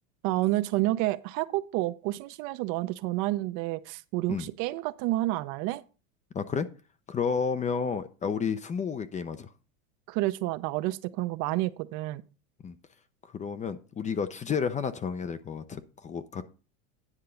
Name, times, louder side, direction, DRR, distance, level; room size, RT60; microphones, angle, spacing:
voice 1, 0.2-5.8 10.1-12.2, right 17 dB, 50° right, 0.6 m, -29 dB
voice 2, 6.3-6.7 7.1-9.5 12.6-12.8 13.3-16.4, left 6 dB, 20° left, 0.5 m, -31 dB
9.8 x 3.7 x 6.8 m
supercardioid pair, 115°, 38 cm